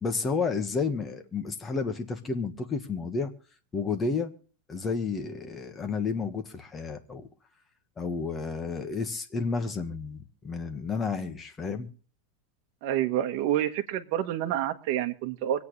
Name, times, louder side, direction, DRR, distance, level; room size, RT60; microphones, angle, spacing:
voice 1, 0.0-3.3 3.7-4.3 4.7-7.3 8.0-11.9, left 4 dB, 20° left, 1.5 m, -31 dB
voice 2, 12.8-15.6, right 11 dB, 55° right, 1.5 m, -28 dB
25.0 x 8.5 x 3.3 m
supercardioid pair, 145°, 0 cm